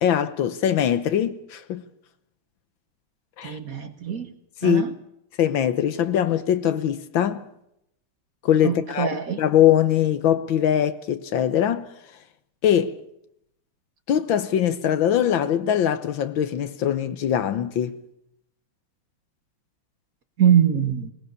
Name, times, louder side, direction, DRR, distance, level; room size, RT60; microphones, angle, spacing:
voice 1, 0.0-1.8 3.4-3.6 4.6-4.8 5.4-7.4 8.4-9.1 9.4-11.9 12.6-12.9 14.1-18.0, left 10 dB, 70° left, 1.7 m, -22 dB
voice 2, 3.4-4.3 4.6-4.9 8.6-9.4 20.4-21.1, right 9 dB, 45° right, 1.5 m, -22 dB
20.5 x 20.0 x 6.9 m
omnidirectional pair, 2.3 m